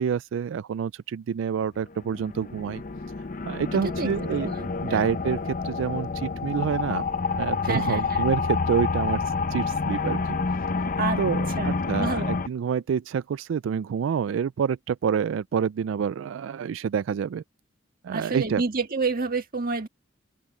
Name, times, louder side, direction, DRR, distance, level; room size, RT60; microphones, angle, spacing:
voice 1, 0.0-2.8 3.4-4.5 4.8-7.0 7.4-10.4 11.2-17.4 18.0-18.6, right 7 dB, 90° right, 0.3 m, -28 dB
sound 1, 1.8-12.5, left 4 dB, 45° left, 0.7 m, -28 dB
voice 2, 4.4-5.1 7.6-8.3 11.0-11.2 11.6-12.3 18.1-19.9, right 4 dB, 50° right, 1.7 m, -29 dB
head